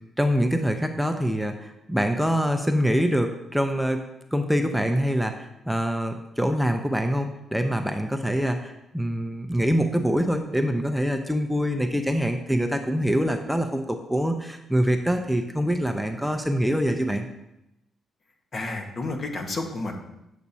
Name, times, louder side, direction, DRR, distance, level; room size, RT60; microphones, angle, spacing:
voice 1, 0.2-4.0 4.3-17.2, equal, ahead, 6 dB, 0.6 m, -25 dB
voice 2, 18.5-20.0, left 2 dB, 50° left, 3 dB, 1.1 m, -31 dB
8.1 x 6.0 x 2.7 m, 0.88 s
supercardioid pair, 65°, 0 cm